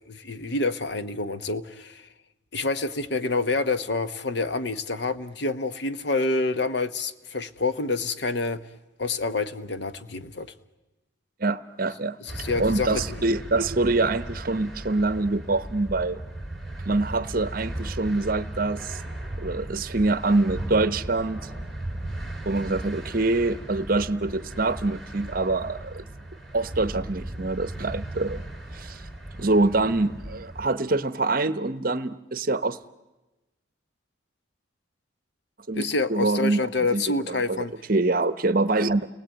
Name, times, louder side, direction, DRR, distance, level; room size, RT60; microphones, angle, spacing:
voice 1, 0.1-2.1 2.5-8.6 9.0-10.5 12.2-13.2 35.7-37.7, left 3 dB, 60° left, 12 dB, 1.1 m, -27 dB
voice 2, 11.4-12.2 12.6-16.2 16.9-19.0 19.4-21.5 22.4-26.1 26.5-28.4 28.7-29.0 29.4-32.8 35.7-39.0, right 2 dB, 45° right, 14 dB, 0.9 m, -25 dB
sound 1, 12.3-30.7, right 1 dB, 5° left, 3.2 m, -36 dB
30.0 x 20.0 x 9.1 m, 1.1 s
head